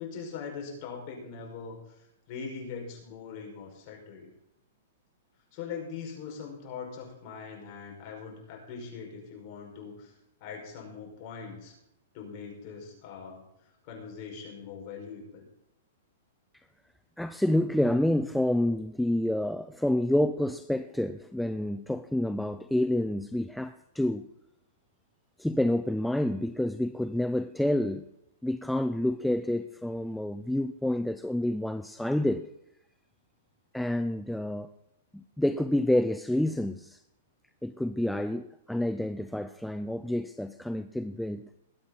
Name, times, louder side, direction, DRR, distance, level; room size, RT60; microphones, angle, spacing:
voice 1, 0.0-4.3 5.5-10.1 10.4-11.7 12.1-13.4 13.8-15.5, left 5 dB, 35° left, 5.3 m, -41 dB
voice 2, 17.2-24.3 25.4-28.1 28.4-32.5 33.7-34.7 35.1-37.0 37.6-41.5, left 1 dB, ahead, 0.4 m, -28 dB
20.5 x 8.6 x 4.1 m
hypercardioid pair, 155°, 0 cm